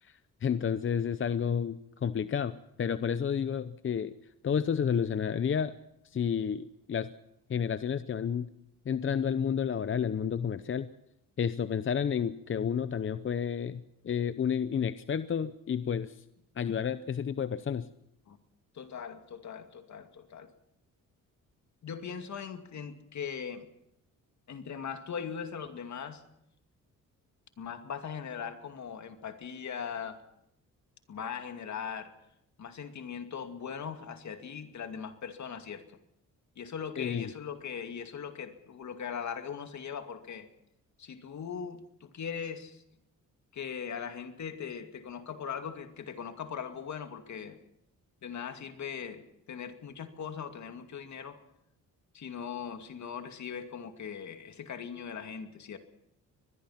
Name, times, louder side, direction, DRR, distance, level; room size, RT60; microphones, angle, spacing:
voice 1, 0.0-4.1 4.4-5.7 6.0-7.1 7.5-8.5 8.9-10.9 11.4-16.2 16.6-17.9 37.0-37.3, left 7 dB, 40° left, 13 dB, 0.7 m, -31 dB
voice 2, 18.7-20.5 21.8-23.7 24.5-26.2 27.6-30.2 31.1-32.1 32.6-35.8 36.6-40.5 41.0-42.8 43.5-47.6 48.2-51.4 52.1-55.8, left 7 dB, 60° left, 7 dB, 2.4 m, -40 dB
24.0 x 21.0 x 5.9 m, 0.81 s
cardioid pair, 110°, 33 cm